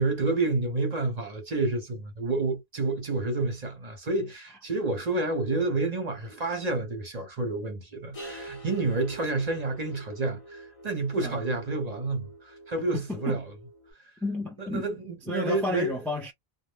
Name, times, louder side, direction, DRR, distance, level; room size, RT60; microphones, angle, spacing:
voice 1, 0.0-13.4 14.7-15.9, right 3 dB, 45° right, 0.8 m, -29 dB
sound 1, 8.1-13.9, right 1 dB, 40° left, 0.7 m, -46 dB
voice 2, 12.8-13.4 14.2-14.9 15.2-16.3, left 2 dB, ahead, 0.4 m, -32 dB
2.1 x 2.0 x 3.2 m
omnidirectional pair, 1.0 m